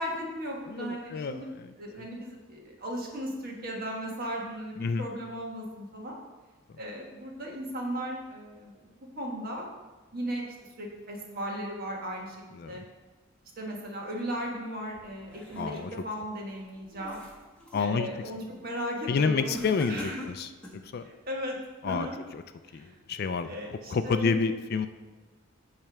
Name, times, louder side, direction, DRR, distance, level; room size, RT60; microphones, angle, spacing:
voice 1, 0.0-1.5 1.8-6.2 6.8-8.8 9.1-9.7 10.1-10.4 10.8-12.4 12.7-12.8 13.6-17.2 17.8-19.6 19.9-20.2 21.0-21.6 21.8-22.2 22.7-23.0 23.4-24.5, equal, 45° right, -1 dB, 1.4 m, -36 dB
voice 2, 0.7-2.1 4.8-5.1 12.5-12.8 15.6-15.9 17.7-18.1 19.1-20.5 20.9-21.0 21.8-22.1 22.3-22.4 22.7-24.9, left 5 dB, 50° left, 10 dB, 0.3 m, -29 dB
sound 1, 15.0-16.1 16.6-17.9 18.3-18.7 19.5-20.9, left 1 dB, 5° left, 1.3 m, -43 dB
8.8 x 3.3 x 6.0 m, 1.3 s
head